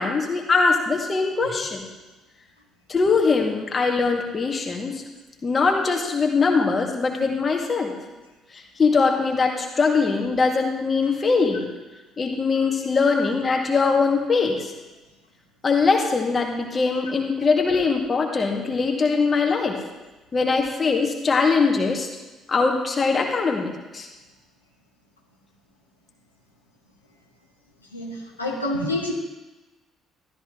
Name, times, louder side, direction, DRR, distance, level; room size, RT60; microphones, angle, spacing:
voice 1, 0.0-1.8 2.9-5.0 5.4-7.9 8.8-11.7 12.2-14.7 15.6-19.8 20.3-22.1 22.5-24.1, left 4 dB, 30° left, 1 dB, 2.1 m, -22 dB
voice 2, 27.9-29.1, left 1 dB, 85° left, -3 dB, 1.6 m, -27 dB
13.5 x 13.0 x 3.3 m, 1.1 s
figure-of-eight pair, 50°, 0 cm